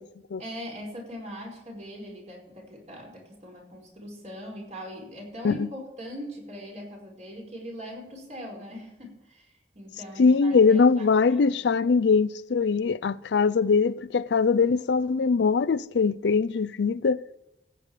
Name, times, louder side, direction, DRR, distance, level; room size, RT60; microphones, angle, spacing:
voice 1, 0.4-9.5 9.7-11.6, equal, 40° right, 4.8 m, -41 dB
voice 2, 10.2-17.2, left 5 dB, 70° left, 0.4 m, -22 dB
16.0 x 8.3 x 4.9 m
head